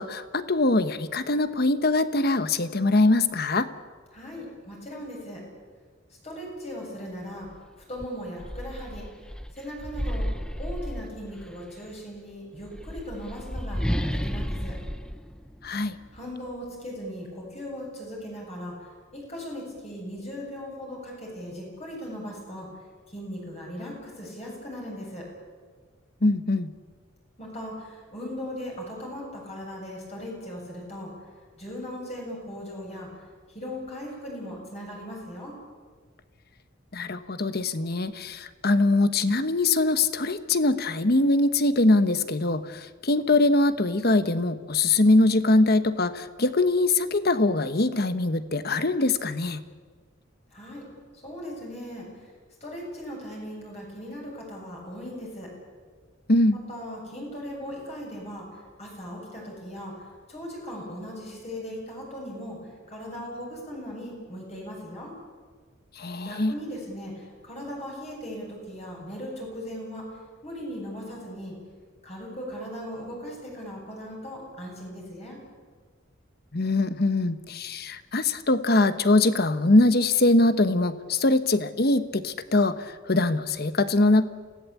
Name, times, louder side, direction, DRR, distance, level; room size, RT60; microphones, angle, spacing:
voice 1, 0.0-3.7 15.6-16.0 26.2-26.7 36.9-49.6 56.3-56.6 66.0-66.5 76.5-84.2, left 2 dB, 50° left, 12 dB, 1.1 m, -22 dB
voice 2, 4.1-5.4 6.2-7.5 7.9-9.0 9.5-10.3 10.6-14.8 16.1-22.7 23.1-25.3 27.4-31.1 31.6-35.5 50.5-50.8 51.1-52.1 52.6-55.5 56.5-65.1 66.2-70.1 70.4-71.5 72.0-75.4, equal, 30° left, -2 dB, 7.9 m, -38 dB
sound 1, 7.4-7.6 8.0-11.6 12.6-16.2, equal, 5° left, 0.7 m, -32 dB
28.0 x 17.5 x 8.5 m, 1.5 s
head